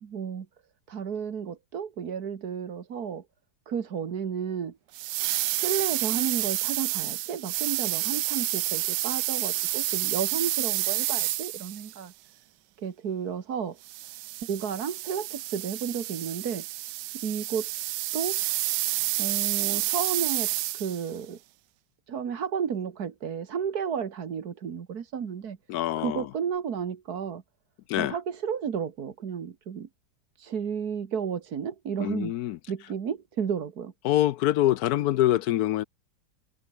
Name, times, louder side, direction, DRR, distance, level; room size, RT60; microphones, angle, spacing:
voice 1, 0.0-0.5 0.9-3.2 3.7-4.8 5.5-12.1 12.8-13.8 14.4-16.7 17.2-17.7 18.1-18.4 19.2-21.4 22.1-25.6 26.0-27.4 28.0-29.9 30.4-32.3 32.7-33.9, right 7 dB, 65° right, 2.0 m, -32 dB
sound 1, 4.9-12.0 13.9-21.1, right 16 dB, 80° right, 1.2 m, -29 dB
voice 2, 25.7-26.3 27.9-28.1 32.0-32.6 34.0-35.8, left 14 dB, 70° left, 1.0 m, -25 dB
omnidirectional pair, 1.8 m